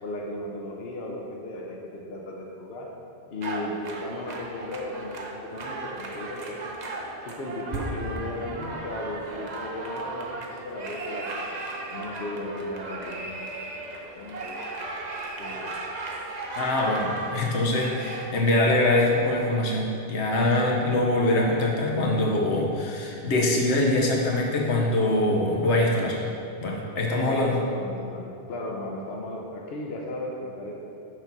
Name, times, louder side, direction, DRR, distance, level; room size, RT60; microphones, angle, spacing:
voice 1, 0.0-2.9 3.3-6.8 7.3-11.5 11.9-13.5 14.2-15.0 15.4-15.7 27.1-30.7, left 1 dB, 65° left, -1 dB, 1.0 m, -35 dB
sound 1, 3.4-18.3, right 2 dB, 45° right, 0.7 m, -36 dB
voice 2, 16.6-26.2 26.6-27.6, left 1 dB, 85° left, -1 dB, 1.2 m, -23 dB
6.3 x 4.0 x 5.9 m, 2.5 s
omnidirectional pair, 1.1 m